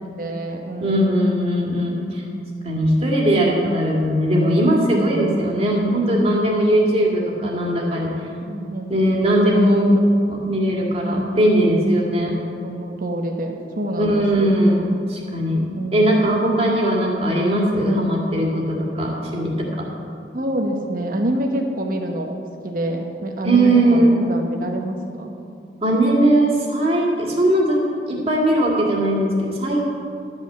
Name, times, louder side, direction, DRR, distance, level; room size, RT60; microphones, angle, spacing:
voice 1, 0.2-1.2 8.5-8.9 9.5-9.9 11.0-11.5 12.2-12.3 12.6-14.6 15.8-16.1 20.3-22.3 22.6-25.3, right 1 dB, 50° right, 2 dB, 1.1 m, -26 dB
voice 2, 0.8-2.2 2.6-8.1 8.9-9.9 10.3-12.3 14.0-19.9 23.5-24.1 25.8-27.8 28.1-29.8, right 1 dB, 35° right, -2 dB, 2.1 m, -19 dB
12.0 x 5.8 x 7.8 m, 2.5 s
head